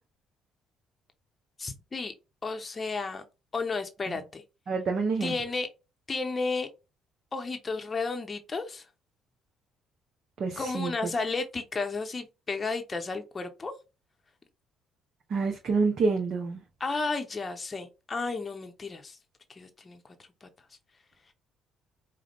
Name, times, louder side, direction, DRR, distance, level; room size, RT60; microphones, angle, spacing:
voice 1, 1.6-2.1 2.4-3.2 3.5-4.4 5.2-5.7 6.1-6.7 7.3-8.9 10.6-13.7 16.8-19.2 19.5-20.5, left 3 dB, 30° left, 0.7 m, -33 dB
voice 2, 4.7-5.3 10.4-10.9 15.3-16.6, right 4 dB, 45° right, 0.7 m, -27 dB
4.9 x 2.1 x 3.0 m
figure-of-eight pair, 50°, 0 cm